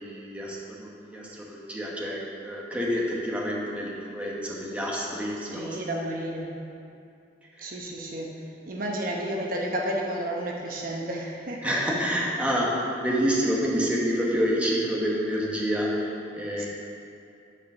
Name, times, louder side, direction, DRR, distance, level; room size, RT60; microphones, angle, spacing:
voice 1, 0.0-5.8 11.6-16.7, equal, 5° right, -4 dB, 1.2 m, -28 dB
voice 2, 5.5-6.5 7.6-8.3 8.7-11.8 16.6-16.7, right 1 dB, 50° right, -1 dB, 0.9 m, -31 dB
9.9 x 4.9 x 6.2 m, 2.5 s
head